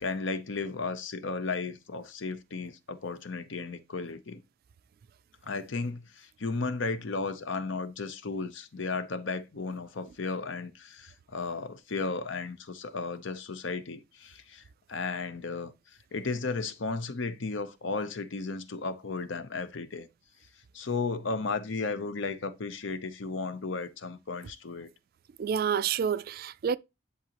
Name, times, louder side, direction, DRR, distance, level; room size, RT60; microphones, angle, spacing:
voice 1, 0.0-4.4 5.4-14.6 14.9-15.7 16.1-20.1 20.7-24.9, left 4 dB, 70° left, 0.7 m, -34 dB
voice 2, 25.4-26.8, right 7 dB, 50° right, 0.3 m, -28 dB
10.5 x 4.1 x 2.9 m
head